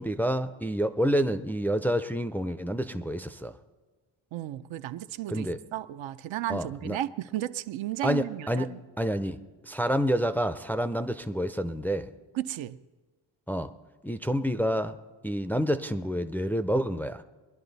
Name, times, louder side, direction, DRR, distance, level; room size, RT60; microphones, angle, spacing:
voice 1, 0.0-3.5 5.3-5.6 6.5-7.0 8.0-9.4 9.6-12.1 13.5-13.7 14.0-15.0 15.2-17.2, equal, 5° left, 0.4 m, -28 dB
voice 2, 4.3-5.5 5.7-8.8 12.3-12.8, right 13 dB, 75° right, 0.6 m, -34 dB
21.5 x 11.0 x 4.0 m
cardioid pair, 90°, 47 cm